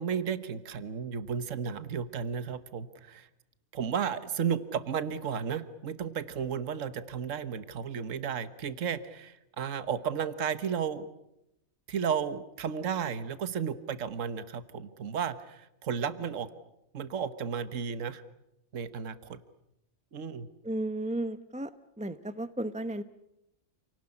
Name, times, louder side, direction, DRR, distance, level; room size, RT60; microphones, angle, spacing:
voice 1, 0.0-3.3 3.7-11.1 11.9-16.5 16.9-18.2 18.7-19.4 20.1-20.5, right 7 dB, 65° right, 12 dB, 1.6 m, -33 dB
voice 2, 20.6-21.7 22.0-23.0, right 1 dB, 5° right, 12 dB, 0.7 m, -34 dB
29.0 x 18.5 x 9.8 m, 0.84 s
omnidirectional pair, 1.4 m